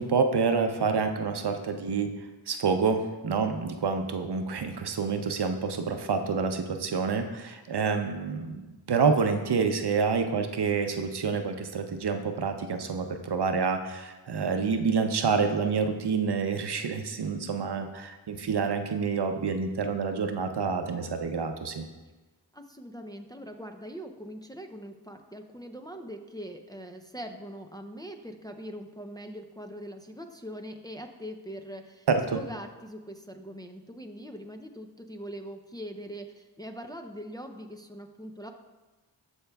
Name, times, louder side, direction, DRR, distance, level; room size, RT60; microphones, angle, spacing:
voice 1, 0.0-2.1 2.5-21.8 32.1-32.4, right 5 dB, 60° right, 6 dB, 0.7 m, -28 dB
voice 2, 22.5-32.1 32.3-38.5, equal, 10° left, 4 dB, 0.5 m, -42 dB
13.5 x 4.5 x 2.3 m, 1.2 s
cardioid pair, 45°, 44 cm